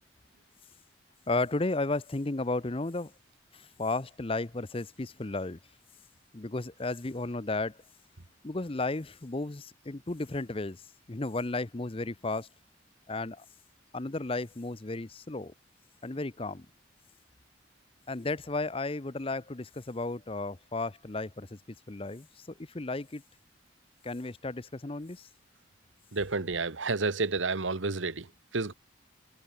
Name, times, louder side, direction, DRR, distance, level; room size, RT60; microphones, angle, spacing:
voice 1, 1.3-3.1 3.5-5.6 6.3-7.8 8.4-10.8 11.1-12.5 13.1-13.4 13.9-15.5 16.0-16.7 18.1-21.6 21.9-23.2 24.0-25.3, left 2 dB, 30° left, 0.8 m, -34 dB
voice 2, 26.1-28.3 28.5-28.7, right 3 dB, 90° right, 1.4 m, -30 dB
head